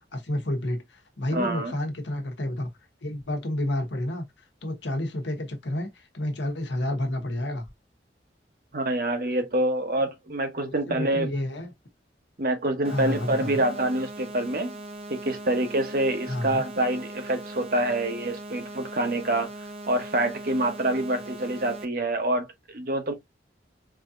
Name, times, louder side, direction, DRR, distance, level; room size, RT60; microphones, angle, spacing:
voice 1, 0.1-2.7 3.0-4.2 4.6-7.7 10.6-11.7 12.8-13.6 16.3-16.6, left 1 dB, 85° left, 1.2 m, -30 dB
voice 2, 1.3-1.8 8.7-11.3 12.4-14.7 15.1-19.5 19.9-23.1, right 1 dB, 50° right, 1.0 m, -26 dB
sound 1, 12.8-21.8, right 1 dB, 30° right, 0.6 m, -40 dB
4.8 x 2.8 x 2.4 m
head